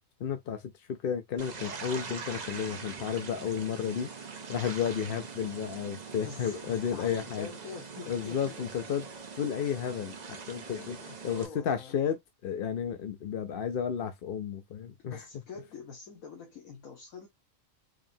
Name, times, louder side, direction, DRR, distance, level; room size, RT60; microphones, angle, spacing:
voice 1, 0.2-7.5 8.1-9.1 9.4-11.0 11.2-15.2, left 8 dB, 55° left, 0.6 m, -32 dB
sound 1, 1.4-11.5, right 5 dB, 40° right, 0.7 m, -43 dB
voice 2, 6.2-8.6 10.7-12.0 15.0-17.3, left 5 dB, 85° left, 1.6 m, -45 dB
4.9 x 2.8 x 2.7 m
omnidirectional pair, 1.4 m